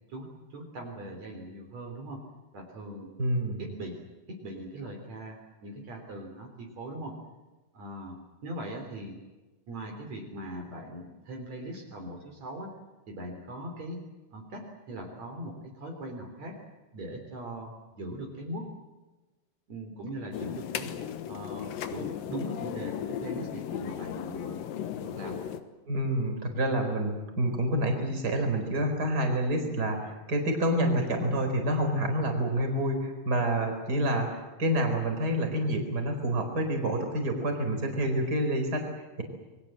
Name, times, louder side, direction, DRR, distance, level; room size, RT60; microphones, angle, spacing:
voice 1, 0.5-2.2 2.5-3.1 3.6-4.0 4.3-7.2 7.7-9.2 9.7-12.7 13.1-14.0 14.3-16.6 16.9-18.7 19.7-20.9 21.3-24.6 25.0-25.5, right 1 dB, 50° right, 1 dB, 4.5 m, -40 dB
voice 2, 3.2-3.6 25.9-39.2, right 1 dB, 25° right, 4 dB, 4.7 m, -28 dB
sound 1, 20.3-25.6, left 10 dB, 80° left, 3.0 m, -36 dB
28.5 x 22.0 x 7.7 m, 1.1 s
omnidirectional pair, 3.9 m